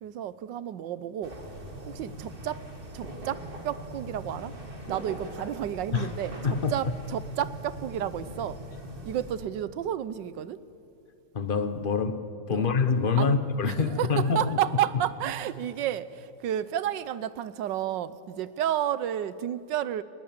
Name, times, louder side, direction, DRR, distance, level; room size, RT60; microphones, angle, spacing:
voice 1, 0.0-1.3 1.9-2.6 2.9-4.5 4.9-8.6 9.0-10.6 12.5-12.7 13.2-13.4 13.6-20.0, right 10 dB, 70° right, 1.3 m, -31 dB
sound 1, 1.2-9.4, right 1 dB, 25° right, 2.5 m, -41 dB
voice 2, 11.3-12.2 12.5-14.6, left 5 dB, 35° left, 0.9 m, -25 dB
20.5 x 20.0 x 8.7 m
omnidirectional pair, 2.2 m